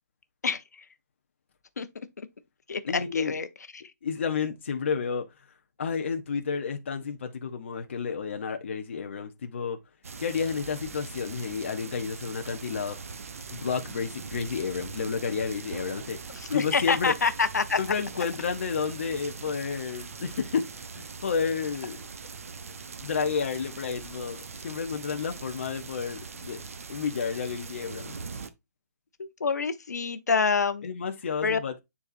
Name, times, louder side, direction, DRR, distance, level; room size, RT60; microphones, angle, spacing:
voice 1, 0.4-0.8 1.8-1.9 2.2-2.3 2.7-3.5 3.7-3.8 16.3-17.8 29.2-30.8 31.4-31.6, left 5 dB, 65° left, 0.9 m, -27 dB
voice 2, 2.9-3.3 4.0-5.2 5.8-9.8 10.2-13.0 13.5-16.2 16.5-17.1 17.8-22.0 23.0-26.6 26.9-28.1 30.8-31.8, left 6 dB, 40° left, 0.8 m, -31 dB
sound 1, 10.0-28.5, right 5 dB, 50° right, 0.8 m, -41 dB
9.7 x 4.1 x 2.6 m
hypercardioid pair, 170°, 10 cm